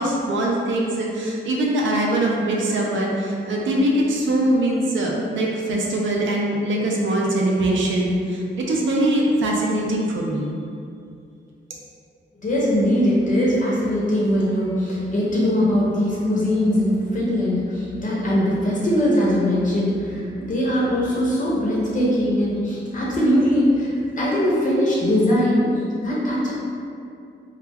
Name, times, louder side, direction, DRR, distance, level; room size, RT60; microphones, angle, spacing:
voice 1, 0.0-10.5, right 1 dB, 75° right, -2 dB, 0.5 m, -22 dB
voice 2, 12.4-26.5, equal, 40° left, -6 dB, 0.5 m, -21 dB
2.3 x 2.1 x 3.4 m, 2.4 s
wide cardioid pair, 145°, 20 cm